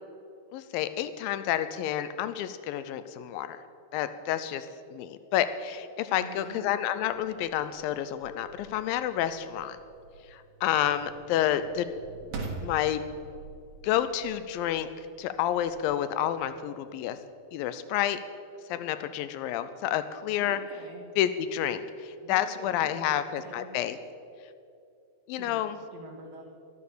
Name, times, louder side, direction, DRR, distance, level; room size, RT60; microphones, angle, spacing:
voice 1, 0.5-3.6 3.9-9.8 10.3-11.9 12.6-13.0 13.8-14.9 15.2-17.2 17.5-18.2 18.7-20.6 21.2-24.0 25.3-25.8, left 11 dB, 85° left, 12 dB, 2.1 m, -29 dB
voice 2, 6.1-6.6 20.4-21.0 22.2-23.7 25.4-26.4, right 3 dB, 50° right, -3 dB, 2.4 m, -46 dB
sound 1, 6.3-17.2, right 3 dB, 75° right, 4.0 m, -46 dB
13.5 x 12.5 x 6.7 m, 2.6 s
omnidirectional pair, 4.6 m